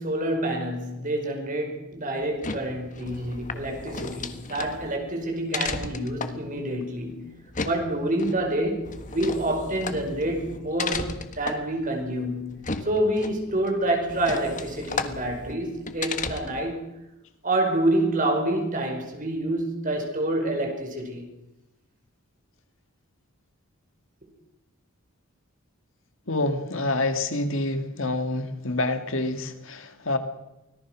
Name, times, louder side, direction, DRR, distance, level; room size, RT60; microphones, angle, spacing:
voice 1, 0.0-7.3 7.6-16.9 17.4-21.2, right 1 dB, 35° right, 4.9 m, -27 dB
sound 1, 2.2-16.7, left 4 dB, 35° left, 1.4 m, -35 dB
voice 2, 26.3-30.2, left 2 dB, 60° left, 2.0 m, -27 dB
25.0 x 18.0 x 6.3 m
head